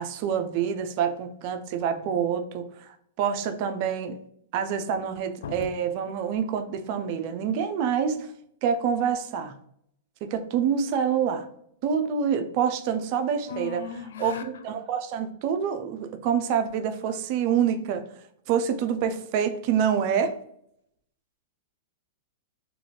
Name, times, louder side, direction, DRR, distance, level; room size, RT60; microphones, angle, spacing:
voice 1, 0.0-4.2 4.5-8.3 8.6-9.6 10.2-11.5 11.8-13.9 14.2-18.0 18.5-20.4, right 7 dB, 50° right, 8 dB, 0.4 m, -27 dB
voice 2, 1.7-2.1 5.4-5.7 13.5-14.6, left 7 dB, 75° left, 8 dB, 0.3 m, -37 dB
2.6 x 2.4 x 3.0 m, 0.71 s
hypercardioid pair, 120°, 0 cm